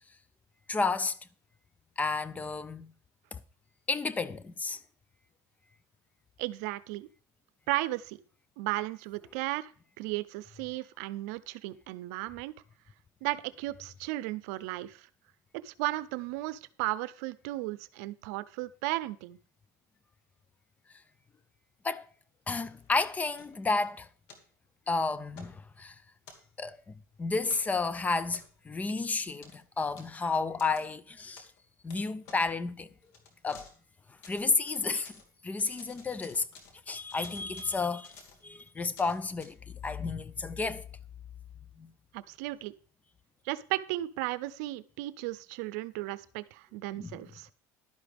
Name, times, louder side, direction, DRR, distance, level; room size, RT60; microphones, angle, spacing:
voice 1, 0.7-1.2 2.0-2.9 3.9-4.8 21.8-22.1 22.5-24.1 24.9-25.9 26.6-26.8 27.2-31.5 31.8-32.9 33.4-33.7 34.3-35.1 35.4-36.5 36.9-38.1 38.4-39.6 39.8-40.9 41.8-41.9 47.0-47.2, left 4 dB, 15° left, 0.5 m, -31 dB
voice 2, 6.4-7.1 7.7-8.2 8.6-9.7 10.0-12.5 13.2-15.1 15.6-19.4 42.1-42.7 43.4-47.5, right 18 dB, 75° right, 0.6 m, -35 dB
sound 1, 22.6-23.9 24.3-24.4 25.3-25.6 26.2-26.8 27.5-27.7 28.3-28.7 29.4-29.6 29.9-30.1 30.6-30.8 31.4-31.6 31.9-32.0 32.2-32.4 33.0-33.8 34.1-35.3 35.6-36.8 37.0-39.5, left 4 dB, 75° left, 2.4 m, -53 dB
11.5 x 9.9 x 3.5 m
supercardioid pair, 130°, 9 cm